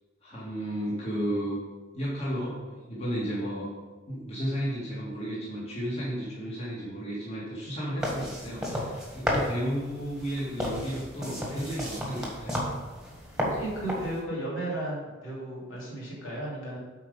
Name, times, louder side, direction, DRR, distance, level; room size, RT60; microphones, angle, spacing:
voice 1, 0.2-1.6 1.9-3.7 4.1-12.6, equal, 30° left, -7 dB, 2.1 m, -33 dB
sound 1, 8.0-14.2, equal, 5° right, 1.6 m, -33 dB
voice 2, 13.4-16.8, right 1 dB, 70° left, -5 dB, 2.9 m, -34 dB
8.3 x 5.0 x 5.4 m, 1.3 s
head